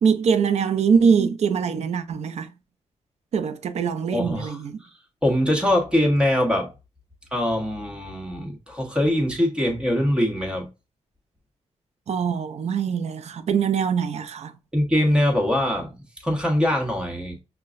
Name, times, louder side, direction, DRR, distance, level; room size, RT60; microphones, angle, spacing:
voice 1, 0.0-2.5 3.3-4.8 12.1-14.5, right 6 dB, 65° right, 0.6 m, -23 dB
voice 2, 4.1-4.9 5.2-6.7 7.3-10.7 14.7-17.4, left 1 dB, 10° right, 1.4 m, -23 dB
5.6 x 2.3 x 2.5 m
cardioid pair, 95°, 12 cm